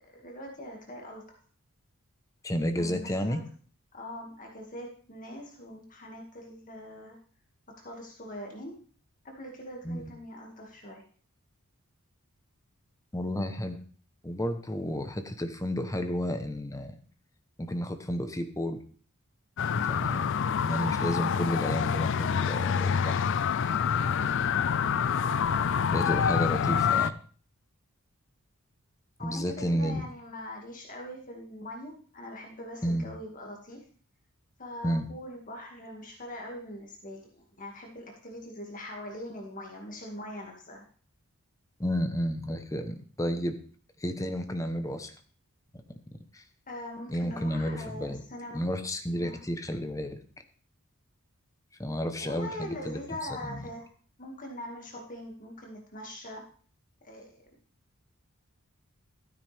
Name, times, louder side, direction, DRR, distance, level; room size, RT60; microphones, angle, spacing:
voice 1, 0.1-1.4 2.8-3.4 3.9-7.2 7.8-8.7 9.2-11.0 24.1-24.4 29.2-33.8 34.6-40.8 46.7-48.6 49.1-49.4 52.2-53.9 54.2-56.4 57.0-57.4, left 1 dB, 35° left, 0 dB, 2.0 m, -42 dB
voice 2, 2.4-3.4 9.8-10.1 13.1-13.8 14.2-17.0 17.6-18.8 19.9-23.3 25.9-27.2 29.2-30.0 32.8-33.1 34.8-35.1 41.8-43.5 44.0-45.1 46.3-46.4 47.1-48.2 48.5-50.2 51.8-53.0 53.4-53.6, equal, 15° left, 7 dB, 0.9 m, -31 dB
sound 1, 19.6-27.1, left 7 dB, 55° left, 0.4 m, -27 dB
13.0 x 9.1 x 3.4 m, 0.43 s
head